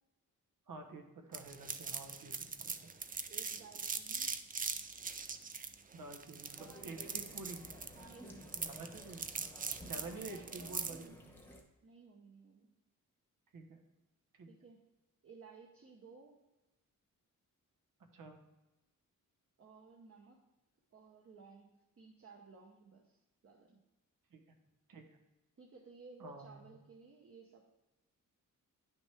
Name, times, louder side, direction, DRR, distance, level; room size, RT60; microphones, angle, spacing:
voice 1, 0.7-2.9 5.9-7.6 8.6-9.2 9.8-11.4 13.5-13.8 14.4-14.5 18.1-18.4 24.3-24.5 24.9-25.2 26.2-26.8, right 3 dB, 85° right, 4 dB, 1.3 m, -49 dB
sound 1, 1.3-11.0, right 5 dB, 25° right, 0.4 m, -41 dB
voice 2, 3.2-4.3 7.9-8.8 10.0-11.2 11.8-12.7 14.5-14.8 15.2-16.4 19.6-20.4 20.9-23.8 25.6-27.6, right 4 dB, 45° right, 0 dB, 0.9 m, -57 dB
Water Fountain, 6.6-11.6, equal, 5° left, 1.0 m, -54 dB
9.8 x 6.0 x 3.5 m, 1.0 s
wide cardioid pair, 165°, 32 cm